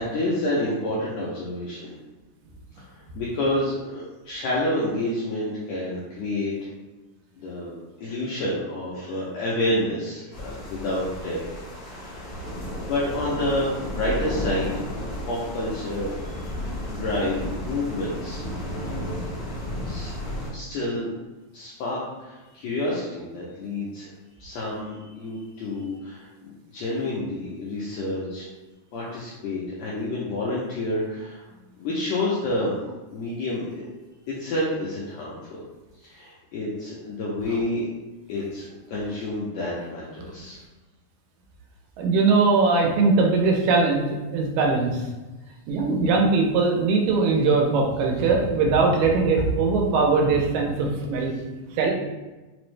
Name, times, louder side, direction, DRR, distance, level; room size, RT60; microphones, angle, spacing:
voice 1, 0.0-1.9 2.9-6.7 7.4-11.4 11.8-12.3 12.8-14.9 15.3-18.4 19.8-20.1 20.5-21.1 21.5-24.1 24.4-28.5 28.9-31.4 31.8-32.7 33.1-33.9 34.3-35.6 36.0-37.9 38.3-40.6 51.3-51.4, left 1 dB, 85° left, -6 dB, 1.6 m, -29 dB
sound 1, 10.3-20.5, equal, 50° left, 0.6 m, -33 dB
voice 2, 42.0-45.0 45.7-51.4 51.7-51.9, right 4 dB, 90° right, 0 dB, 2.3 m, -21 dB
5.1 x 2.0 x 3.2 m, 1.1 s
omnidirectional pair, 3.8 m